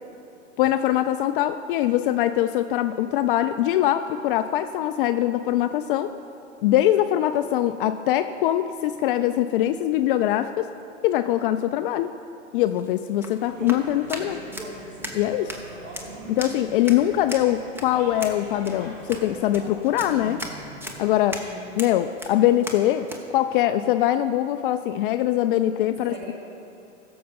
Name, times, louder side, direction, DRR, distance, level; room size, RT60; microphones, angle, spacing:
voice 1, 0.6-6.1 6.6-10.7 11.0-12.1 12.5-14.4 15.1-15.5 16.3-20.4 21.0-21.4 21.8-26.3, left 12 dB, 45° left, 10 dB, 0.4 m, -22 dB
sound 1, 12.6-23.3, equal, 5° right, 1.1 m, -38 dB
sound 2, 13.4-21.0, right 1 dB, 90° right, 2.4 m, -41 dB
voice 2, 15.3-16.0 21.3-21.7 25.8-26.3, right 1 dB, 25° right, -3 dB, 3.1 m, -42 dB
16.0 x 7.0 x 5.3 m, 2.7 s
hypercardioid pair, 110°, 37 cm